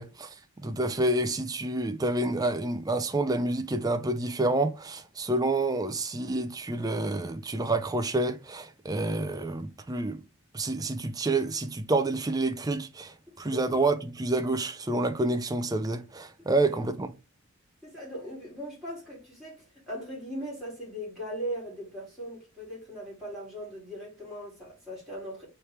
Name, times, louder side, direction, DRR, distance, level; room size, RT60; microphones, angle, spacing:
voice 1, 0.0-10.2 10.5-17.1, right 2 dB, 15° right, 0.4 m, -28 dB
voice 2, 16.4-16.8 17.8-25.5, equal, ahead, 2.8 m, -39 dB
4.4 x 3.3 x 3.2 m
head